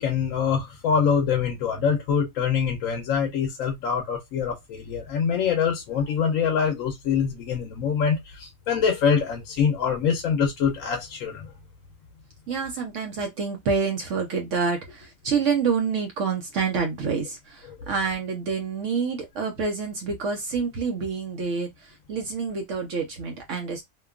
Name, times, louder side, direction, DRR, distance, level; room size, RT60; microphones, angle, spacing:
voice 1, 0.0-11.5, left 6 dB, 75° left, 1.0 m, -24 dB
voice 2, 12.5-23.8, right 5 dB, 70° right, 1.0 m, -27 dB
2.8 x 2.2 x 2.3 m
omnidirectional pair, 1.4 m